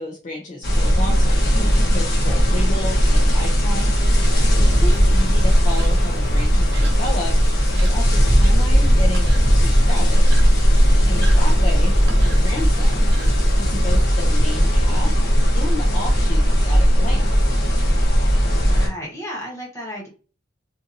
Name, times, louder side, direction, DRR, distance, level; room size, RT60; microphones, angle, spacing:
voice 1, 0.0-1.5 1.9-4.3 4.6-7.4 7.8-10.4 11.0-15.1 15.5-17.6, left 2 dB, 40° left, 0 dB, 0.5 m, -32 dB
sound 1, 0.6-18.9, equal, 55° left, 0.9 m, -16 dB
sound 2, 4.0-14.0, right 1 dB, 55° right, 0.6 m, -38 dB
voice 2, 11.2-11.5 18.5-20.1, equal, 15° left, -2 dB, 1.0 m, -34 dB
2.6 x 2.6 x 2.5 m, 0.37 s
head